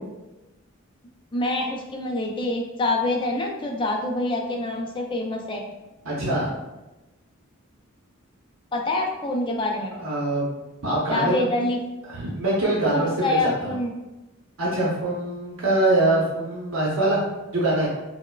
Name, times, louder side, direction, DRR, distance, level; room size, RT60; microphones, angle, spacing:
voice 1, 1.3-5.6 8.7-9.9 11.1-11.8 12.9-13.9, left 2 dB, 25° left, 1 dB, 0.4 m, -26 dB
voice 2, 6.0-6.5 10.0-10.5 10.8-11.4 12.1-13.1 13.4-13.7 14.6-17.2 17.5-17.9, right 2 dB, 80° right, -6 dB, 0.7 m, -23 dB
4.3 x 2.1 x 2.3 m, 1.0 s
head